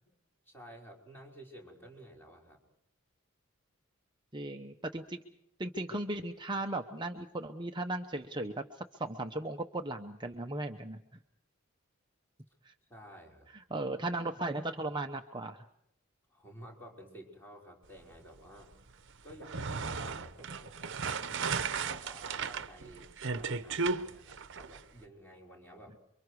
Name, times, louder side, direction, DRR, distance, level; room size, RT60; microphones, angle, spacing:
voice 1, 0.5-2.6 12.9-13.5 16.3-18.7 19.2-26.0, equal, 10° left, -2 dB, 5.5 m, -52 dB
voice 2, 4.3-5.2 5.6-11.0 12.6-12.7 13.5-15.6, right 2 dB, 20° right, 4 dB, 0.9 m, -37 dB
sound 1, 19.3-24.8, right 5 dB, 60° right, 1.0 m, -35 dB
28.5 x 24.0 x 4.8 m, 0.75 s
head